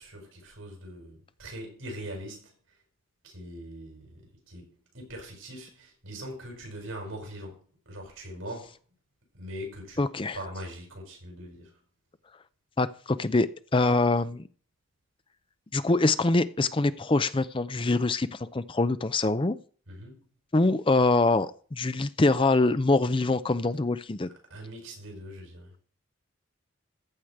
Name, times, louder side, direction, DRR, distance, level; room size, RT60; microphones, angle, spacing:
voice 1, 0.0-2.5 3.2-8.7 9.3-10.1 10.3-11.8 19.9-20.2 24.5-25.7, equal, 80° right, 6.8 m, -42 dB
voice 2, 10.0-10.4 12.8-13.5 13.7-14.5 15.7-19.6 20.5-24.3, left 2 dB, 25° left, 0.5 m, -24 dB
14.5 x 5.0 x 7.8 m
head